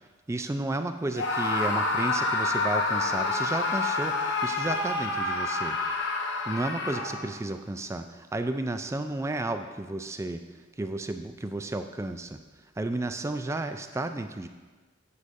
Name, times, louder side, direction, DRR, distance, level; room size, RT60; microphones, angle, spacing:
voice 1, 0.3-5.8 6.5-12.4 12.8-14.5, right 2 dB, 15° right, 8 dB, 0.3 m, -32 dB
Screaming, 1.1-7.4, left 3 dB, 60° left, 0.8 m, -28 dB
9.7 x 6.7 x 2.6 m, 1.3 s
head